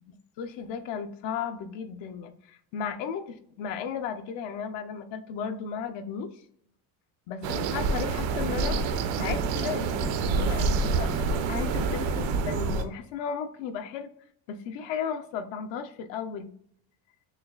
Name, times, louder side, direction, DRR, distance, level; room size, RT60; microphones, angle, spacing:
voice 1, 0.1-6.3 7.3-11.1 11.5-14.1 14.5-16.5, left 7 dB, 75° left, 8 dB, 0.7 m, -35 dB
sound 1, 7.4-12.8, right 4 dB, 75° right, 0.7 m, -27 dB
6.4 x 2.3 x 2.3 m, 0.67 s
cardioid pair, 130°, 44 cm